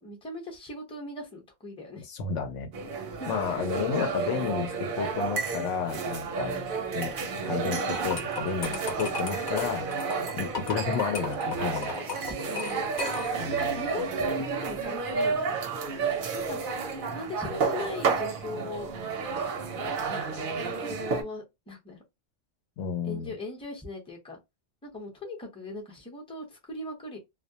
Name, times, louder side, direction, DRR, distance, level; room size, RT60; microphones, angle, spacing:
voice 1, 0.0-2.0 3.1-3.4 12.5-12.8 13.5-15.8 16.3-16.6 17.1-18.9 20.1-20.4 20.9-22.0 23.0-24.4 24.8-27.2, left 2 dB, 5° left, 0.6 m, -39 dB
voice 2, 2.1-2.7 3.3-6.5 6.9-7.1 7.4-9.8 10.4-11.9 13.4-13.7 22.8-23.3, left 6 dB, 75° left, 0.9 m, -31 dB
sound 1, 2.7-21.2, right 5 dB, 55° right, 0.7 m, -31 dB
sound 2, 7.9-13.5, left 4 dB, 50° left, 0.7 m, -36 dB
2.2 x 2.1 x 2.7 m
omnidirectional pair, 1.3 m